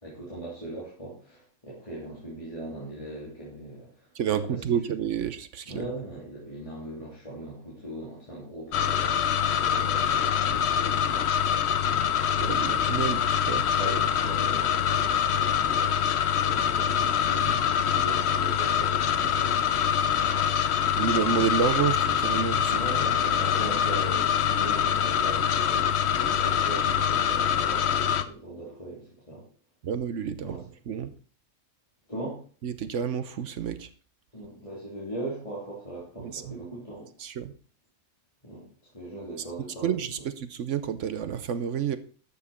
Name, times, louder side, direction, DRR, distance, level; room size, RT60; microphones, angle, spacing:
voice 1, 0.0-4.1 4.5-4.6 5.7-9.2 9.6-11.3 11.8-12.1 13.7-20.3 22.7-29.5 30.4-30.6 32.1-32.4 34.3-37.1 38.4-38.7 38.9-40.0, right 1 dB, 25° left, -7 dB, 3.3 m, -39 dB
voice 2, 4.1-5.9 12.4-13.6 21.0-22.8 29.8-31.1 32.6-33.9 36.2-36.6 37.2-37.5 39.8-42.0, right 8 dB, 65° right, 13 dB, 1.0 m, -29 dB
sound 1, 8.7-28.2, left 8 dB, 60° left, 0.9 m, -25 dB
12.0 x 7.2 x 4.2 m, 0.40 s
omnidirectional pair, 1.4 m